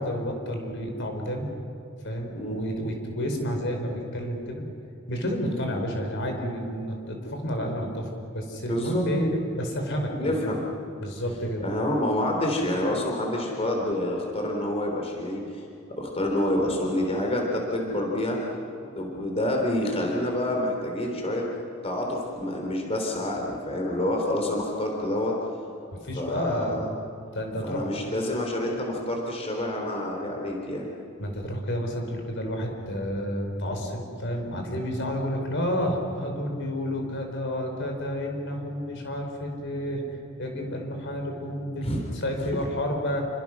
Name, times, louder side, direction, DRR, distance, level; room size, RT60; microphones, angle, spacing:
voice 1, 0.0-1.5 2.0-4.6 5.1-10.4 11.0-11.6 26.0-26.9 27.3-27.9 31.2-40.0 40.4-43.2, equal, 60° left, 3 dB, 4.5 m, -30 dB
voice 2, 2.4-2.7 5.7-5.8 8.6-9.0 10.2-10.6 11.6-15.6 15.9-18.4 19.0-21.4 21.8-25.4 26.2-26.9 27.6-30.9 41.8-42.1 42.4-42.5, left 1 dB, 30° left, 0 dB, 3.6 m, -28 dB
29.0 x 24.5 x 6.2 m, 2.7 s
head